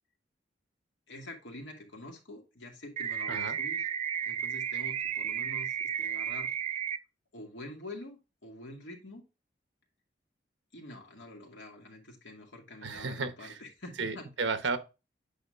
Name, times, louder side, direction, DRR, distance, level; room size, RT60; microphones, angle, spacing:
voice 1, 1.1-3.9 4.2-6.6 7.3-9.2 10.7-14.3, left 1 dB, 85° left, 2.2 m, -46 dB
sound 1, 3.0-7.0, right 8 dB, 35° right, 0.4 m, -33 dB
voice 2, 12.8-13.6 14.0-14.8, right 4 dB, 85° right, 1.0 m, -33 dB
8.6 x 5.3 x 2.5 m
head